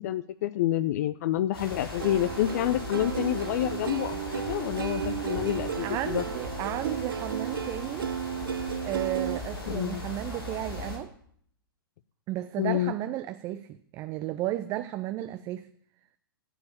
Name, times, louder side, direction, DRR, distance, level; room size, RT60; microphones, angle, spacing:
voice 1, 0.0-6.2 9.7-10.0 12.6-12.9, left 13 dB, 45° left, 14 dB, 0.7 m, -28 dB
sound 1, 1.5-11.0, left 2 dB, 90° left, 6.7 m, -38 dB
Plucked string instrument, 2.0-9.4, right 8 dB, 70° right, 0.6 m, -34 dB
voice 2, 5.8-8.1 8.8-11.1 12.3-15.7, right 14 dB, 30° right, 11 dB, 0.6 m, -33 dB
15.0 x 7.6 x 8.8 m, 0.65 s
figure-of-eight pair, 105°, 12 cm